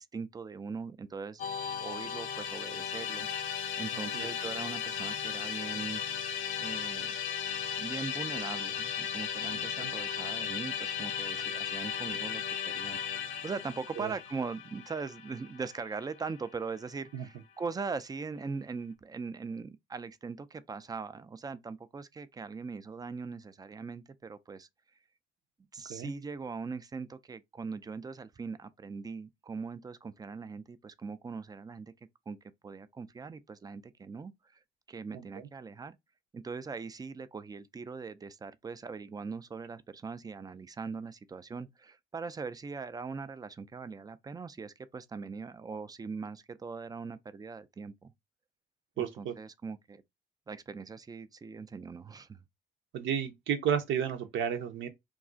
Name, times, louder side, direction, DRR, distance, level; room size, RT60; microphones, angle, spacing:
voice 1, 0.0-1.4 1.8-6.0 6.6-7.1 7.8-24.7 25.7-31.9 32.3-32.4 32.6-34.6 34.9-36.0 36.3-48.1 49.0-50.0 50.5-52.4, right 4 dB, 20° right, 0.3 m, -41 dB
Musical instrument, 1.4-16.6, left 8 dB, 85° left, 0.5 m, -36 dB
voice 2, 3.9-4.3 9.5-9.9 14.0-14.1 17.1-17.3 25.9-26.1 35.1-35.5 49.0-49.3 52.9-54.9, right 8 dB, 75° right, 0.7 m, -33 dB
2.4 x 2.3 x 3.7 m
cardioid pair, 90°, 20 cm